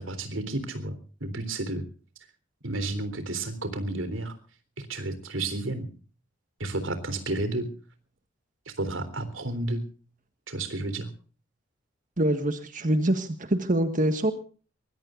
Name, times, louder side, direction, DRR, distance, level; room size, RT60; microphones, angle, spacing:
voice 1, 0.0-1.8 2.6-4.4 4.8-5.9 6.6-7.7 8.7-9.8 10.5-11.1, right 2 dB, 80° right, 11 dB, 3.7 m, -31 dB
voice 2, 12.2-14.3, right 1 dB, 40° right, 8 dB, 1.6 m, -25 dB
23.0 x 21.5 x 2.5 m, 0.38 s
head